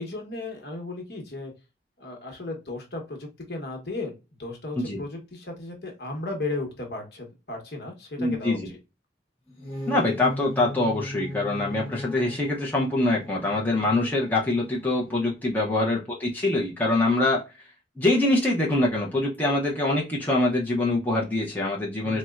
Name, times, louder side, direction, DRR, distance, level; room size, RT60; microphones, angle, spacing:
voice 1, 0.0-1.5 2.0-4.1 4.4-8.8 22.0-22.2, left 2 dB, 60° left, 2 dB, 1.1 m, -35 dB
voice 2, 8.2-8.7 9.9-17.4 18.0-22.2, left 2 dB, 10° left, -4 dB, 0.6 m, -24 dB
sound 1, 9.5-15.4, left 1 dB, 30° left, 1.0 m, -38 dB
4.1 x 2.1 x 2.3 m, 0.27 s
head